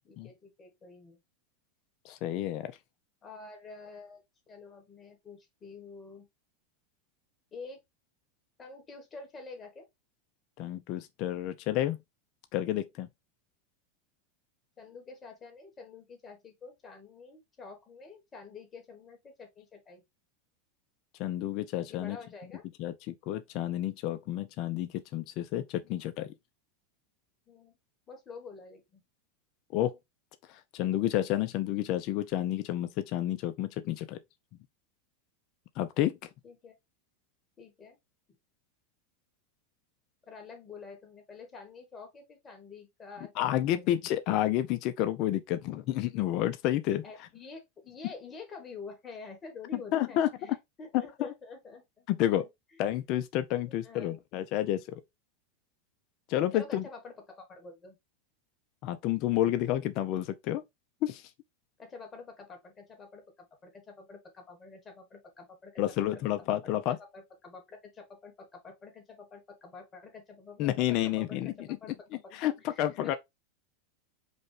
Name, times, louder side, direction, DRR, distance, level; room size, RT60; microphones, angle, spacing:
voice 1, 0.0-1.2 3.2-6.3 7.5-7.8 8.6-9.8 14.8-20.0 21.9-22.6 27.5-27.8 28.1-29.0 36.4-36.7 37.6-38.0 40.3-43.9 47.0-50.5 50.8-52.1 52.4-52.5 53.7-54.2 56.5-58.0 61.8-65.8 66.1-66.2 66.5-66.7 67.0-70.9 71.2-71.4 71.7-72.4 72.7-73.2, left 4 dB, 20° left, 1.5 m, -48 dB
voice 2, 2.0-2.7 10.6-12.0 12.5-13.1 21.2-22.2 22.8-26.3 29.7-30.0 30.7-34.2 35.8-36.2 43.4-47.0 49.9-50.3 51.2-51.3 52.1-52.5 52.8-55.0 56.3-56.8 58.8-60.6 61.0-61.2 65.8-67.0 70.6-71.5 72.3-73.1, left 13 dB, 45° left, 0.5 m, -30 dB
5.2 x 2.3 x 3.2 m
supercardioid pair, 135°, 0 cm